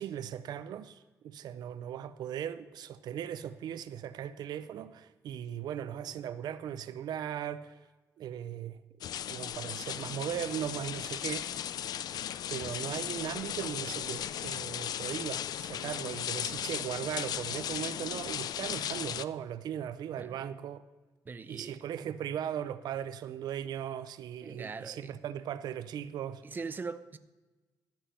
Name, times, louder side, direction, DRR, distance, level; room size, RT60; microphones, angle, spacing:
voice 1, 0.0-7.8 8.2-8.8 9.3-11.8 12.5-20.8 21.5-26.4, right 10 dB, 80° right, 0.5 m, -38 dB
sound 1, 9.0-19.2, left 10 dB, 70° left, 0.4 m, -36 dB
voice 2, 21.3-21.8 24.4-25.1 26.4-27.2, right 4 dB, 30° right, 0.6 m, -41 dB
13.0 x 7.3 x 5.6 m
cardioid pair, 115°, 7 cm